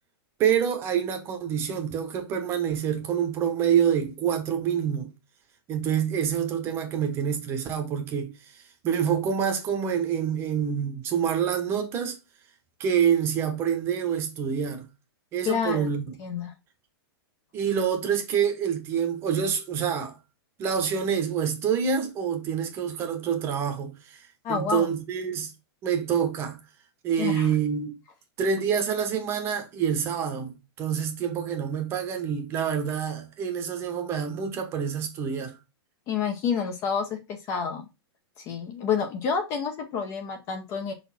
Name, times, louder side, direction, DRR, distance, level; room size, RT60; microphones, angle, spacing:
voice 1, 0.4-5.1 5.7-12.2 12.8-14.8 15.3-16.1 17.5-20.2 20.6-25.5 25.8-26.6 27.0-27.9 28.4-35.6, right 8 dB, 20° right, 1.0 m, -27 dB
voice 2, 15.5-15.9 16.2-16.5 24.4-24.9 27.2-27.5 36.1-37.9 38.4-40.9, left 6 dB, 20° left, 0.7 m, -29 dB
5.6 x 4.1 x 4.2 m
hypercardioid pair, 170°, 13 cm